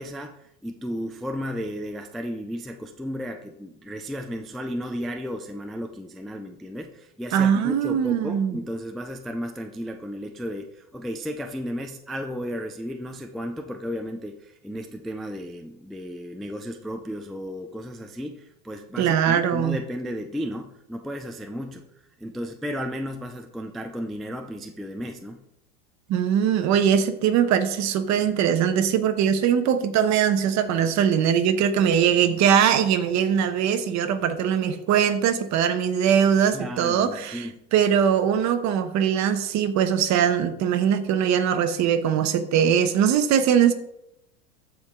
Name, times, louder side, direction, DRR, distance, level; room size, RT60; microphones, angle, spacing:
voice 1, 0.0-21.8 22.2-25.4 36.5-37.6, equal, ahead, 5 dB, 0.3 m, -34 dB
voice 2, 7.3-8.6 19.0-19.8 26.1-43.7, right 8 dB, 45° right, 9 dB, 1.0 m, -21 dB
13.5 x 4.7 x 3.7 m, 0.79 s
supercardioid pair, 125°, 39 cm